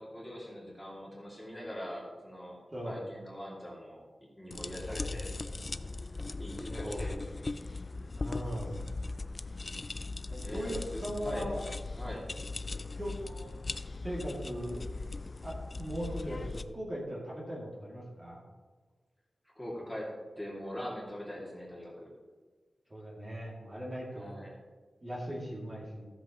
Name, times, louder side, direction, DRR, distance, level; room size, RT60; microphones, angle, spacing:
voice 1, 0.0-2.6 2.8-4.0 4.4-5.3 6.4-7.4 10.4-11.5 12.0-12.3 19.5-22.1 24.1-24.5, equal, 5° left, -5 dB, 2.4 m, -42 dB
sound 1, 4.5-16.6, left 3 dB, 35° left, 0.3 m, -39 dB
voice 2, 4.9-5.9 6.7-7.2 8.1-8.8 10.3-11.6 12.7-13.6 14.0-14.8 15.4-18.4 22.9-24.3 25.0-26.1, equal, 30° right, -5 dB, 2.4 m, -39 dB
14.0 x 7.9 x 3.0 m, 1.4 s
wide cardioid pair, 105°, 0 cm